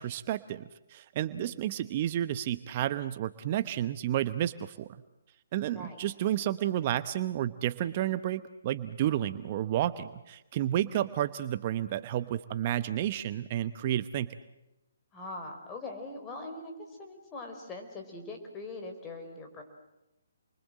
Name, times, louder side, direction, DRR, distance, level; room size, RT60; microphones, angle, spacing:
voice 1, 0.0-4.9 5.5-14.4, right 12 dB, 40° right, 13 dB, 0.9 m, -31 dB
voice 2, 1.4-1.7 5.7-6.0 15.1-19.6, left 2 dB, 20° left, 3 dB, 5.0 m, -42 dB
29.0 x 23.0 x 7.7 m, 0.95 s
hypercardioid pair, 145°, 0 cm